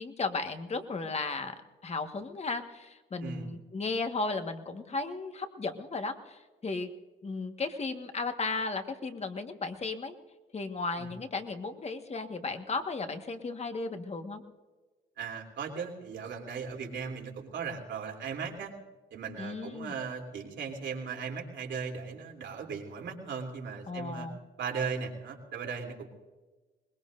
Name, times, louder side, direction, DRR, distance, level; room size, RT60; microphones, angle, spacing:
voice 1, 0.0-1.5 1.8-6.9 7.2-10.1 10.5-14.4 19.4-19.9 23.9-24.4, left 3 dB, 35° left, 6 dB, 1.6 m, -35 dB
voice 2, 15.2-18.7 19.1-24.3 24.6-26.1, right 6 dB, 70° right, 1 dB, 3.3 m, -37 dB
22.5 x 20.5 x 2.6 m, 1.3 s
cardioid pair, 90°, 20 cm